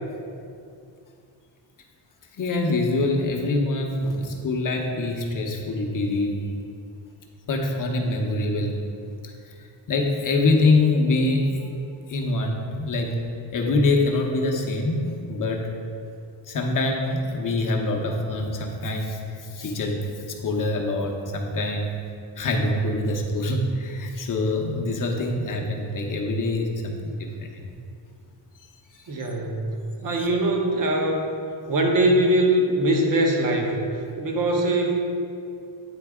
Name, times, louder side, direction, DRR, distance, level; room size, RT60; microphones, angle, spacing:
voice 1, 2.3-6.4 7.5-8.7 9.2-11.7 12.1-13.2 13.5-15.7 16.5-22.0 22.3-27.6 28.9-29.1 30.2-30.3, left 2 dB, 40° left, 1 dB, 0.7 m, -25 dB
voice 2, 29.1-31.2 31.7-34.9, right 1 dB, 45° right, 1 dB, 0.9 m, -22 dB
9.1 x 3.9 x 3.5 m, 2.4 s
wide cardioid pair, 150°, 48 cm